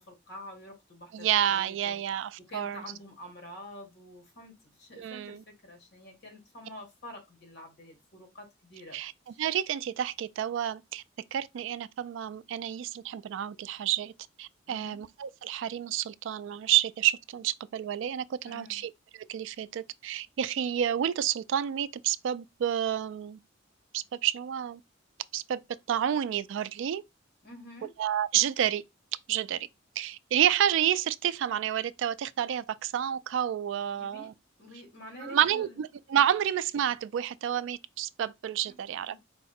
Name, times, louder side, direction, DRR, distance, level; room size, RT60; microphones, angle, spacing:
voice 1, 0.0-2.0 2.5-9.0 9.3-9.4 14.7-15.0 18.5-18.8 27.4-27.9 33.9-34.3 34.6-35.8 38.7-38.8 39.1-39.2, left 1 dB, 60° left, 1.8 m, -48 dB
voice 2, 1.1-2.8 5.0-5.4 8.9-11.0 11.3-14.1 14.4-23.4 23.9-24.8 25.3-25.6 25.9-27.0 28.0-28.8 29.3-29.7 30.0-34.3 35.2-39.2, right 10 dB, 70° right, 0.3 m, -29 dB
4.6 x 2.1 x 4.2 m
head